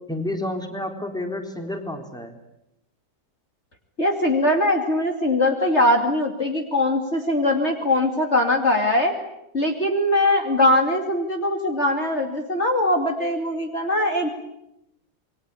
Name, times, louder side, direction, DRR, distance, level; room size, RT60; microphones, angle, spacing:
voice 1, 0.1-2.3, left 1 dB, ahead, 4 dB, 3.8 m, -30 dB
voice 2, 4.0-9.1 9.5-14.3, left 1 dB, 35° left, 3 dB, 2.9 m, -21 dB
28.0 x 23.0 x 8.6 m, 0.83 s
omnidirectional pair, 2.0 m